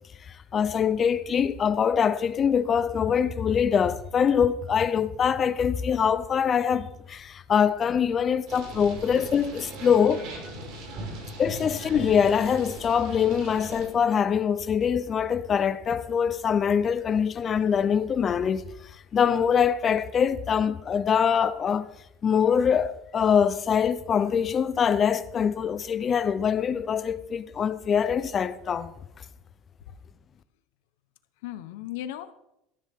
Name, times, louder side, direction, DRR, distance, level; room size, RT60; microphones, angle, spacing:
voice 1, 0.5-10.2 11.4-18.7 19.1-21.9 22.2-28.9, left 7 dB, 20° left, 0.6 m, -24 dB
sound 1, 8.5-13.8, right 2 dB, 50° right, 5.2 m, -39 dB
voice 2, 10.6-11.1 31.4-32.3, left 12 dB, 90° left, 1.1 m, -37 dB
19.0 x 14.0 x 3.7 m
cardioid pair, 180°, 0 cm